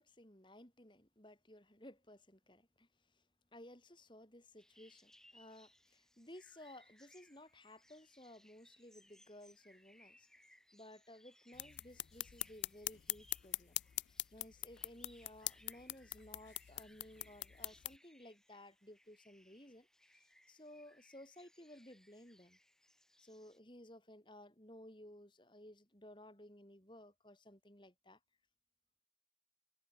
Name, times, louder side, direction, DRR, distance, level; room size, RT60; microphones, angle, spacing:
voice 1, 0.0-3.3 3.5-10.4 10.7-13.8 14.1-19.9 20.1-22.6 23.2-28.2, left 1 dB, 25° left, 3.5 m, -57 dB
sound 1, 4.6-23.6, left 1 dB, 5° left, 3.7 m, -68 dB
sound 2, 11.5-18.0, left 18 dB, 75° left, 0.4 m, -43 dB
head